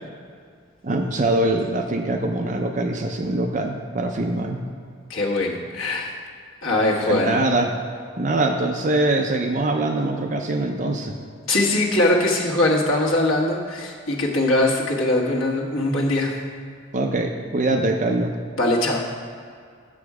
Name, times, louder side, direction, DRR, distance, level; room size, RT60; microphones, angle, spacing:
voice 1, 0.8-4.6 7.1-7.7 8.2-11.1 16.9-18.3, right 2 dB, 35° right, 4 dB, 0.5 m, -23 dB
voice 2, 5.1-6.1 6.6-7.4 11.5-16.4 18.6-19.0, left 1 dB, 75° left, -2 dB, 1.4 m, -21 dB
8.5 x 6.9 x 4.8 m, 2.2 s
head